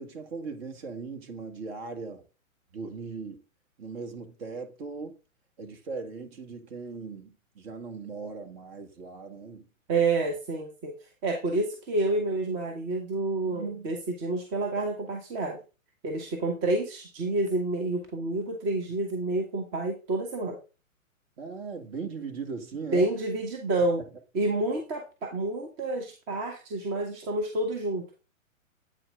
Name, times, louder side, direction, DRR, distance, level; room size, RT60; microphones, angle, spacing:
voice 1, 0.0-2.2 2.7-3.4 3.8-5.2 5.6-9.7 21.4-23.1 24.0-24.1, right 4 dB, 45° right, 1.9 m, -39 dB
voice 2, 9.9-10.9 11.2-15.6 16.0-20.6 22.9-24.0 24.3-28.1, right 2 dB, 25° right, 1.2 m, -29 dB
8.7 x 4.8 x 3.7 m
figure-of-eight pair, 125°, 41 cm